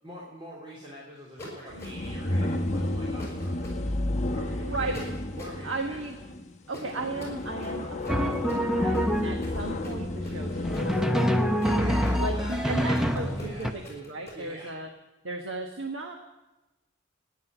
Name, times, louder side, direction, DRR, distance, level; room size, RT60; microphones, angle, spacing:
voice 1, 0.0-4.0 4.3-5.0 5.4-6.0 8.6-9.2 11.5-13.7 14.3-14.7, equal, 30° right, -7 dB, 3.2 m, -44 dB
sound 1, 1.4-2.2 3.2-3.8 4.9-5.6 6.7-14.4, left 1 dB, 15° left, 5.8 m, -44 dB
sound 2, 1.7-13.7, left 1 dB, 35° left, 1.0 m, -32 dB
voice 2, 4.6-5.1 5.6-6.2 6.7-11.3 12.2-14.9 15.2-16.1, right 3 dB, 80° right, 3 dB, 1.4 m, -35 dB
Drum, 8.1-9.6 10.6-13.7, equal, 5° right, 0.8 m, -26 dB
14.5 x 10.0 x 9.2 m, 1.1 s
head